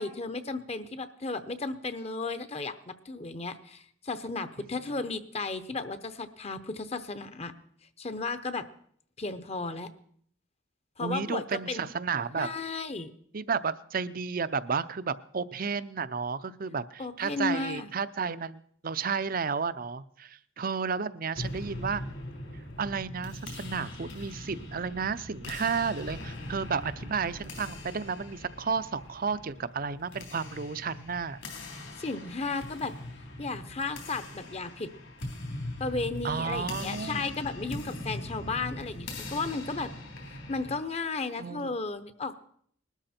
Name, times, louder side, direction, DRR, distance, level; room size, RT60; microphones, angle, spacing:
voice 1, 0.0-7.5 8.0-8.7 9.2-9.9 11.0-11.9 12.4-13.1 17.0-17.9 31.7-32.9 33.4-34.9 35.8-39.9 40.3-42.3, left 3 dB, 35° left, 12 dB, 0.8 m, -34 dB
voice 2, 11.0-12.5 13.3-22.0 22.8-31.4 36.2-37.3 41.4-41.7, right 5 dB, 45° right, 15 dB, 0.6 m, -32 dB
sound 1, 21.3-40.8, left 1 dB, 70° left, 3.8 m, -41 dB
20.0 x 13.0 x 4.4 m, 0.63 s
head